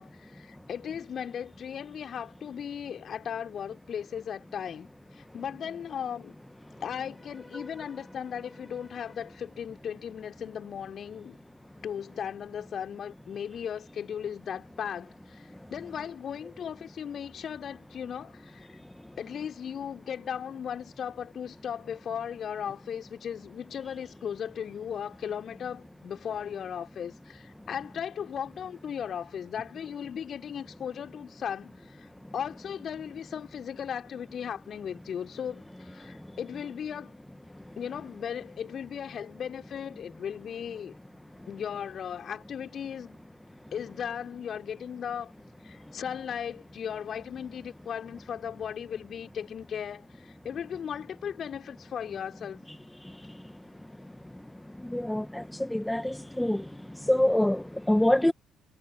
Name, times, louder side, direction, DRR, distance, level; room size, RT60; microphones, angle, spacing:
voice 1, 0.0-4.9 5.1-6.4 6.8-11.4 11.8-18.8 19.2-32.1 32.3-37.1 37.8-40.9 41.5-43.2 43.7-45.3 45.6-52.6, left 8 dB, 45° left, 3.7 m, -37 dB
voice 2, 54.9-56.6 57.1-58.3, left 1 dB, 5° left, 1.3 m, -25 dB
figure-of-eight pair, 45°, 0 cm